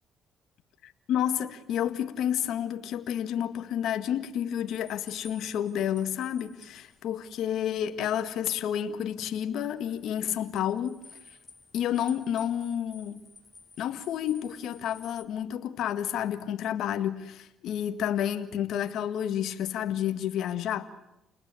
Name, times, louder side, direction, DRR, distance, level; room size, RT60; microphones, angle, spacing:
voice 1, 1.1-11.0 11.7-13.2 13.8-20.9, left 10 dB, 75° left, 1.8 m, -30 dB
sound 1, 4.7-15.2, left 3 dB, 30° left, 5.7 m, -54 dB
30.0 x 20.0 x 9.7 m
cardioid pair, 80°, 0 cm